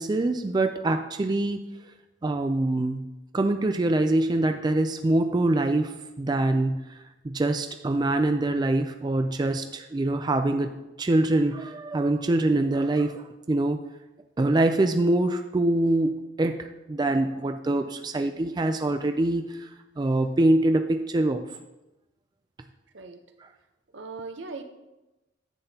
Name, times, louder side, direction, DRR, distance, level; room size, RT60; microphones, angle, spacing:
voice 1, 0.0-1.6 2.2-3.0 3.3-6.8 7.2-10.7 11.0-13.8 14.4-19.7 20.0-21.4, right 2 dB, 20° right, 6 dB, 0.3 m, -24 dB
voice 2, 23.9-24.6, right 3 dB, 75° right, 7 dB, 0.8 m, -38 dB
10.0 x 7.7 x 2.8 m, 1.0 s
head